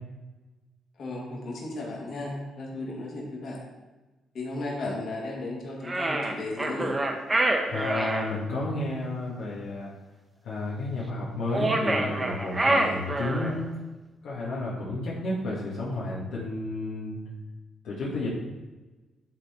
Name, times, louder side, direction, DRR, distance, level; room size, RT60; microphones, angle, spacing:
voice 1, 1.0-3.6 4.3-6.9 12.7-13.0, left 2 dB, 60° left, -3 dB, 2.3 m, -35 dB
sound 1, 5.8-8.3 11.5-13.6, right 2 dB, 25° right, 1.0 m, -26 dB
voice 2, 7.7-9.9 10.4-13.7 14.2-17.2 17.8-18.3, left 2 dB, 80° left, -7 dB, 1.9 m, -32 dB
10.5 x 4.0 x 4.4 m, 1.2 s
cardioid pair, 90°, 0 cm